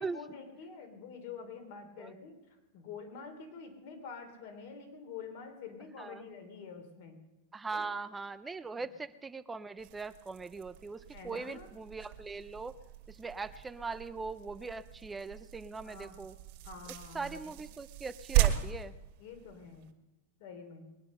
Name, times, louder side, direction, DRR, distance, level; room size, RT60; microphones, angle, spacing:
voice 1, 0.0-2.3 2.7-7.2 7.7-7.8 8.8-8.9 11.1-11.7 15.8-16.1 16.6-17.4 19.2-19.9 20.4-20.8, left 5 dB, 55° left, 6 dB, 3.5 m, -47 dB
voice 2, 7.5-12.8 13.1-16.3 17.1-18.9, right 4 dB, 10° right, 12 dB, 0.5 m, -40 dB
sound 1, 9.8-19.9, right 14 dB, 50° right, 2.1 m, -37 dB
21.5 x 9.9 x 6.5 m, 1.0 s
supercardioid pair, 145°, 0 cm